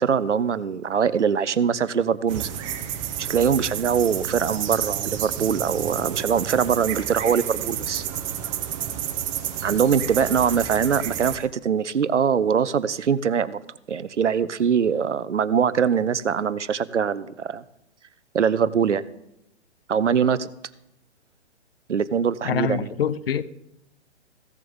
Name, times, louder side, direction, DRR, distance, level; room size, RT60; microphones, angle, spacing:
voice 1, 0.0-2.5 3.2-8.0 9.6-13.6 13.9-17.6 18.3-19.0 19.9-20.5 21.9-22.9, right 7 dB, 80° right, 0.6 m, -22 dB
sound 1, 2.3-11.4, right 10 dB, 30° right, 0.9 m, -30 dB
voice 2, 22.4-23.4, left 8 dB, 55° left, 0.6 m, -25 dB
15.5 x 7.5 x 3.6 m
figure-of-eight pair, 125°, 35 cm